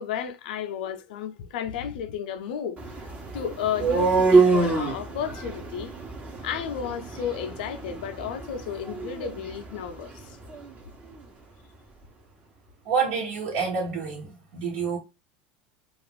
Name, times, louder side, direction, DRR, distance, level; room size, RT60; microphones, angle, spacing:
voice 1, 0.0-5.9 6.4-10.4, left 8 dB, 75° left, 0.5 m, -33 dB
sound 1, 2.8-10.7, right 4 dB, 30° right, 1.0 m, -26 dB
voice 2, 12.8-15.0, right 5 dB, 65° right, 1.2 m, -28 dB
2.4 x 2.4 x 3.7 m
hypercardioid pair, 90°, 5 cm